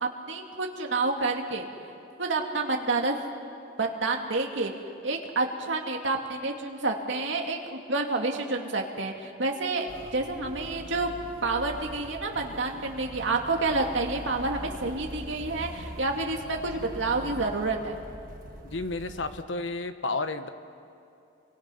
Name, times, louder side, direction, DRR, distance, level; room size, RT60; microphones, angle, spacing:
voice 1, 0.0-1.7 2.2-3.1 3.8-4.7 5.0-11.1 11.4-18.0, right 3 dB, 80° right, 2 dB, 2.1 m, -29 dB
Motor vehicle (road), 9.9-19.4, right 1 dB, 45° right, 1.5 m, -43 dB
voice 2, 18.7-20.5, left 3 dB, 75° left, 9 dB, 1.1 m, -31 dB
29.5 x 24.5 x 5.6 m, 2.5 s
head